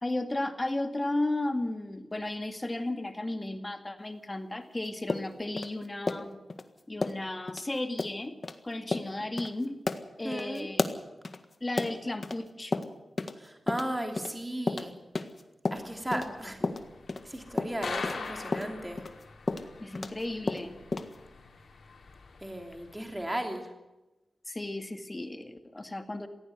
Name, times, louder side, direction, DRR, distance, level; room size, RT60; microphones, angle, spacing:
voice 1, 0.0-6.4 6.9-8.4 8.6-9.8 10.2-10.8 11.6-12.9 15.8-16.2 16.6-16.7 19.8-20.8 24.5-26.3, left 2 dB, 25° left, 7 dB, 2.0 m, -34 dB
sound 1, 5.1-6.6 7.0-7.2 7.5-7.6 8.0-8.1 8.4-8.6 8.9-9.1 9.4-9.5 9.9-12.4 12.7-13.4 13.7-16.3 16.6-20.2 20.5-21.1, left 3 dB, 45° left, 1.7 m, -32 dB
voice 2, 10.2-10.7 13.4-14.9 15.7-16.6 17.2-19.0 22.4-23.7, right 1 dB, 15° right, 3 dB, 3.0 m, -36 dB
sound 2, 15.7-23.2, left 4 dB, 75° left, 4.4 m, -44 dB
17.5 x 16.5 x 9.7 m, 1.0 s
cardioid pair, 65°, 0 cm